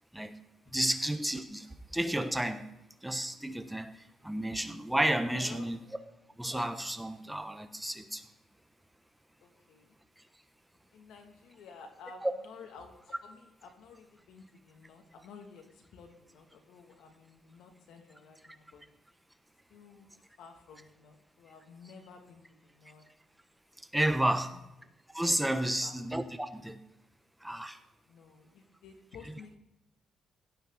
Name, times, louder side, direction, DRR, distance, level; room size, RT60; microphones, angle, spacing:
voice 1, 0.7-1.7 1.9-2.6 3.0-5.8 6.4-8.2 12.2-12.3 23.9-24.5 25.1-26.8 27.4-27.8, right 1 dB, 5° right, 8 dB, 1.1 m, -31 dB
voice 2, 5.3-5.7 9.4-9.9 10.9-18.8 19.7-23.0 24.2-24.6 25.6-25.9 28.1-29.6, left 5 dB, 80° left, 4 dB, 2.7 m, -53 dB
17.0 x 12.5 x 4.2 m, 0.91 s
cardioid pair, 90°, 0 cm